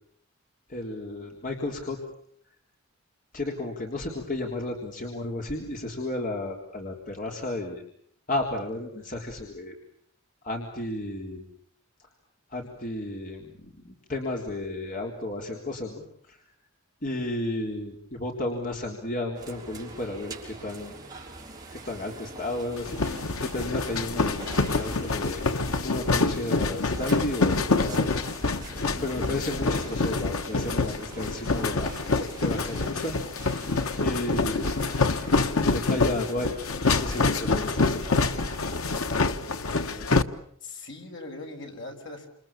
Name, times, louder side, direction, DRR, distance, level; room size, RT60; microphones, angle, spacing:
voice 1, 0.7-2.0 3.3-7.8 8.3-9.8 10.4-11.5 12.5-16.4 17.0-21.0 21.7-23.0 23.4-25.4 25.8-28.1 29.0-31.9 32.4-33.1 34.0-34.7 35.6-36.5 36.9-38.0, left 2 dB, 40° left, 1 dB, 3.6 m, -33 dB
sound 1, 19.3-39.2, right 2 dB, 20° right, 6.2 m, -44 dB
sound 2, 22.8-40.2, left 3 dB, 85° left, 1.4 m, -26 dB
voice 2, 39.1-40.2 40.6-42.3, left 2 dB, 60° left, 3 dB, 6.7 m, -41 dB
29.0 x 27.5 x 7.4 m, 0.67 s
head